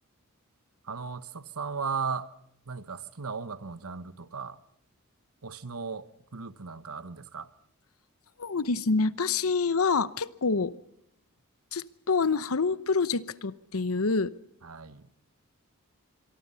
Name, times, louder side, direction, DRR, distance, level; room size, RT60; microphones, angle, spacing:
voice 1, 0.8-2.3 2.7-4.6 5.4-7.5 14.6-15.1, right 5 dB, 90° right, 1.2 m, -36 dB
voice 2, 8.4-10.7 11.7-14.3, left 4 dB, 80° left, 0.9 m, -27 dB
26.0 x 23.5 x 5.6 m
head